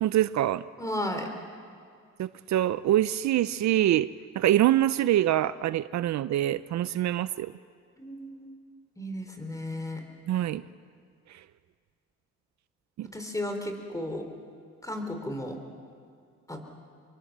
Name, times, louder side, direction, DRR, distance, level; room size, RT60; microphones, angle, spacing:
voice 1, 0.0-0.6 2.2-4.1 4.4-7.5 10.3-10.6 13.0-13.1, right 13 dB, 65° right, 15 dB, 0.6 m, -25 dB
voice 2, 0.8-1.3 8.0-8.5 9.0-10.0 13.1-14.2 14.8-15.6 16.5-16.6, left 1 dB, 10° left, 5 dB, 4.0 m, -34 dB
26.5 x 23.0 x 7.4 m, 2.2 s
cardioid pair, 90°, 30 cm